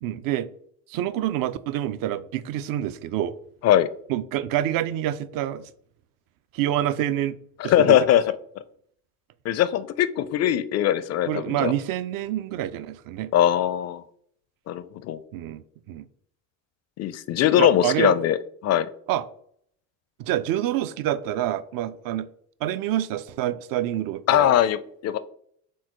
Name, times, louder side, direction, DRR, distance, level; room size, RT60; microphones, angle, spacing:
voice 1, 0.0-0.5 0.9-3.4 4.1-5.7 6.5-7.4 7.6-8.0 11.3-13.3 15.3-16.1 17.6-18.1 19.1-19.2 20.2-22.3 22.6-24.5, right 12 dB, 50° right, 15 dB, 0.4 m, -27 dB
voice 2, 7.6-8.2 9.4-11.7 13.3-14.0 14.7-15.2 17.0-18.4 18.6-18.9 24.3-25.2, left 11 dB, 35° left, 14 dB, 0.4 m, -21 dB
4.4 x 3.7 x 3.0 m, 0.66 s
hypercardioid pair, 55°, 47 cm